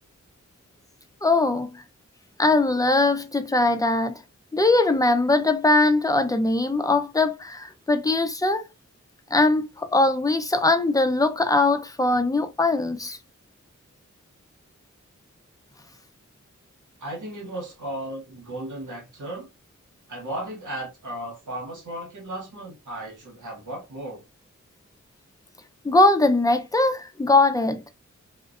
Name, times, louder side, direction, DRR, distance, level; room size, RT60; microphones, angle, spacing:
voice 1, 1.2-1.8 2.4-4.2 4.5-8.6 9.3-13.2 25.8-27.9, left 2 dB, 10° left, 0.5 m, -21 dB
voice 2, 17.0-19.5 20.1-24.2, right 1 dB, 85° right, 1.2 m, -35 dB
2.5 x 2.2 x 2.5 m
wide cardioid pair, 60°, 30 cm